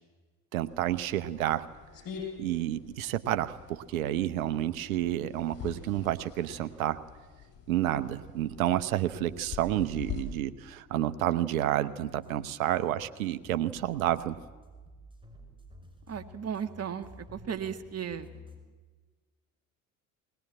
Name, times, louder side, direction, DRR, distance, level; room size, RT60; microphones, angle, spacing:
voice 1, 0.5-1.7 2.4-7.0 7.7-14.4, right 13 dB, 80° right, 11 dB, 1.0 m, -30 dB
sound 1, 0.6-10.2, left 7 dB, 55° left, 7.0 m, -45 dB
sound 2, 12.0-18.6, left 1 dB, 10° right, 5.5 m, -52 dB
voice 2, 16.1-18.3, right 8 dB, 35° right, 8 dB, 2.0 m, -36 dB
20.5 x 19.5 x 8.9 m, 1.3 s
hypercardioid pair, 60°, 41 cm